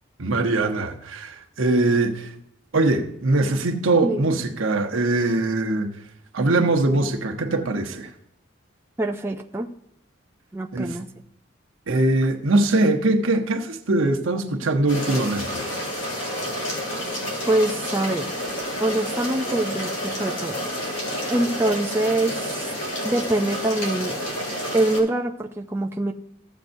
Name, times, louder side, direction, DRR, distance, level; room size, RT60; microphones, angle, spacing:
voice 1, 0.2-2.3 2.7-5.9 6.3-8.1 10.7-11.0 11.9-15.7, right 2 dB, 80° right, 0.9 m, -22 dB
voice 2, 9.0-9.7 10.5-11.1 17.5-18.3 18.8-20.6 21.3-22.7 23.0-24.1 24.7-26.1, right 1 dB, 10° right, 0.3 m, -24 dB
sound 1, 14.9-25.0, equal, 65° left, 2.5 m, -29 dB
14.5 x 7.6 x 2.6 m
head